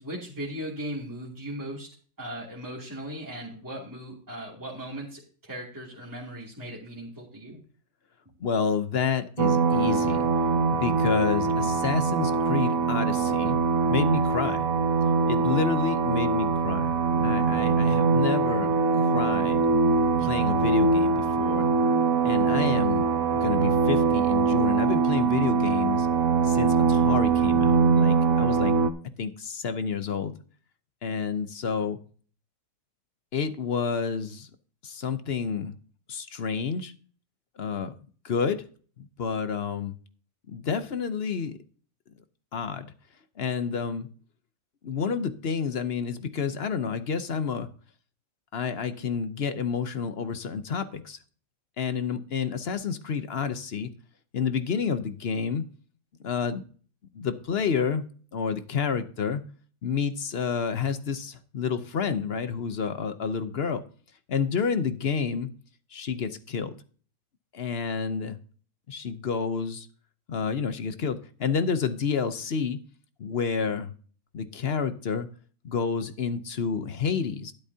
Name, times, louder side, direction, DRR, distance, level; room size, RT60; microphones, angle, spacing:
voice 1, 0.0-1.9 2.2-7.6, right 1 dB, 15° right, -4 dB, 2.7 m, -38 dB
voice 2, 8.4-10.3 10.7-13.6 13.9-14.7 15.3-16.9 17.2-19.7 20.2-21.7 22.2-23.1 23.4-26.1 26.4-28.7 29.2-30.3 31.0-32.0 33.3-34.5 34.8-35.8 36.1-36.9 37.6-37.9 38.2-38.6 39.0-39.9 40.5-41.6 42.5-42.9 43.4-44.1 44.8-47.7 48.5-51.2 51.8-53.9 54.3-55.7 56.2-56.6 57.1-58.0 58.3-59.4 59.8-63.8 64.3-65.5 65.9-66.7 67.5-68.4 68.9-69.9 70.3-72.8 73.2-73.9 74.3-75.3 75.6-77.5, left 6 dB, 55° left, 10 dB, 0.9 m, -29 dB
sound 1, 9.4-28.9, right 5 dB, 85° right, 1.3 m, -23 dB
12.0 x 10.0 x 2.8 m, 0.42 s
omnidirectional pair, 1.4 m